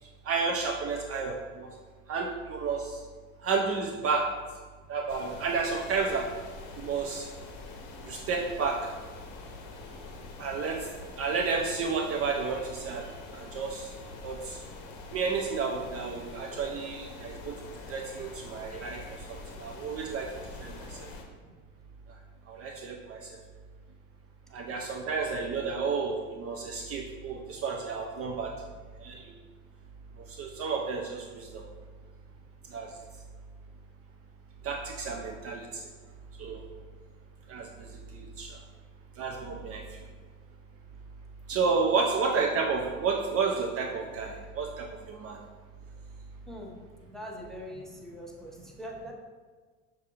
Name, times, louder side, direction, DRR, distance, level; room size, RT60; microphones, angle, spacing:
voice 1, 0.2-1.7 2.1-3.0 3.4-4.3 4.9-6.3 6.8-7.3 8.0-8.9 10.4-10.9 11.2-13.1 13.3-13.9 14.2-14.6 15.1-17.6 17.9-20.3 20.6-21.1 22.1-22.2 22.5-23.4 24.5-28.5 29.0-29.4 30.2-31.6 32.7-32.9 34.6-35.9 36.4-36.6 37.5-38.6 39.2-40.1 41.5-45.4, right 4 dB, 40° right, 1 dB, 0.5 m, -31 dB
sound 1, 5.1-21.2, left 3 dB, 50° left, 0.8 m, -45 dB
voice 2, 47.0-49.1, equal, ahead, -1 dB, 0.6 m, -42 dB
5.8 x 2.6 x 2.9 m, 1.4 s
hypercardioid pair, 85°, 39 cm